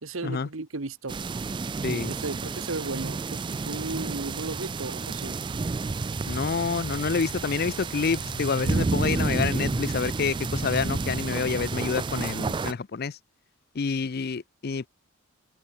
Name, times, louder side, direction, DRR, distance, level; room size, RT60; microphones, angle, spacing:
voice 1, 0.0-1.2 2.1-5.4, right 3 dB, 70° right, 1.2 m, -35 dB
sound 1, 1.1-12.7, right 3 dB, 20° right, 0.3 m, -30 dB
voice 2, 1.8-2.1 6.3-13.2 13.7-14.9, left 5 dB, 45° left, 0.5 m, -28 dB
sound 2, 6.2-11.3, left 1 dB, 30° left, 1.7 m, -43 dB
head